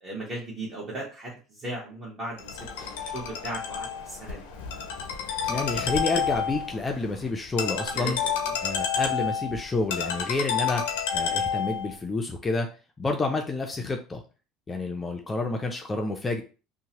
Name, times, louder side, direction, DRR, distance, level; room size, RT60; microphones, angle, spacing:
voice 1, 0.0-4.4 7.9-8.4, right 1 dB, 35° right, -5 dB, 1.0 m, -37 dB
Ringtone, 2.4-11.9, left 7 dB, 90° left, 0.5 m, -30 dB
voice 2, 5.4-8.2 8.6-10.8 11.1-12.7 13.0-14.2 14.7-16.4, left 3 dB, 20° left, 3 dB, 0.4 m, -29 dB
2.9 x 2.1 x 2.8 m, 0.34 s
supercardioid pair, 110°, 0 cm